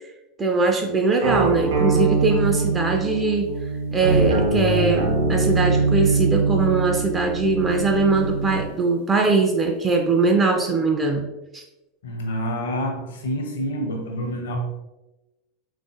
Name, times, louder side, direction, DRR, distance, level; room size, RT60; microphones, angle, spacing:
voice 1, 0.4-3.5 3.9-11.3 11.5-11.6, right 3 dB, 20° right, 2 dB, 0.3 m, -21 dB
sound 1, 1.2-8.7, right 3 dB, 65° right, 0.6 m, -22 dB
voice 2, 12.0-14.6, equal, 65° left, 3 dB, 0.6 m, -28 dB
3.6 x 2.5 x 2.4 m, 1.0 s
figure-of-eight pair, 85°, 0 cm